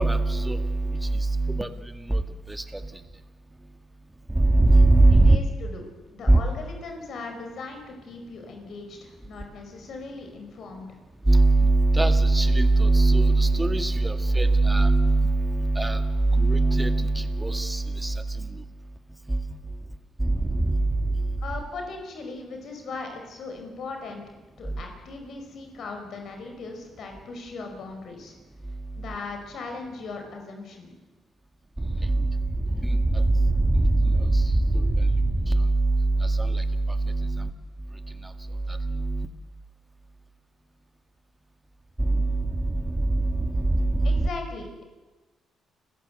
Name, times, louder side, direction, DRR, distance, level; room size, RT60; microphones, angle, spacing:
voice 1, 0.0-1.7 2.1-2.2 2.5-2.8 4.4-5.4 6.3-6.4 11.3-18.1 19.3-19.4 20.2-20.9 32.0-32.4 32.8-36.8 37.0-37.5 38.8-39.3 42.0-44.2, right 2 dB, 10° right, 8 dB, 1.9 m, -21 dB
voice 2, 5.1-5.8 6.1-10.9 21.4-24.2 24.6-28.4 29.0-30.9 44.0-44.8, left 3 dB, 65° left, 4 dB, 5.3 m, -38 dB
29.5 x 15.0 x 8.0 m, 1.2 s
cardioid pair, 90°, 0 cm